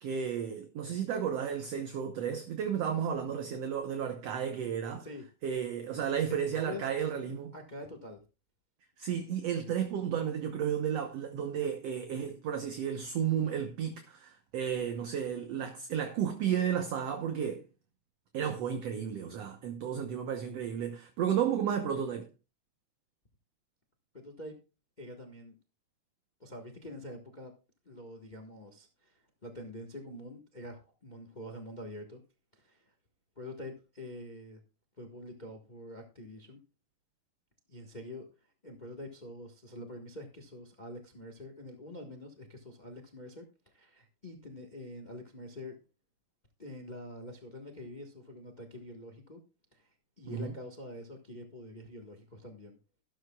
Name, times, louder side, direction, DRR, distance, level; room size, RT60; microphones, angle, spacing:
voice 1, 0.0-5.1 5.4-7.5 9.0-17.6 18.3-22.3 50.3-50.5, right 8 dB, 65° right, 1.9 m, -33 dB
voice 2, 6.3-6.9 7.5-8.2 24.1-24.6 25.0-25.5 26.4-27.5 27.8-32.2 32.5-32.9 33.4-34.6 35.0-36.6 37.7-38.3 38.6-43.5 43.7-45.8 46.6-49.4 49.7-49.9 50.2-52.8, left 1 dB, 55° left, 0.4 m, -46 dB
13.0 x 12.5 x 2.3 m
omnidirectional pair, 3.7 m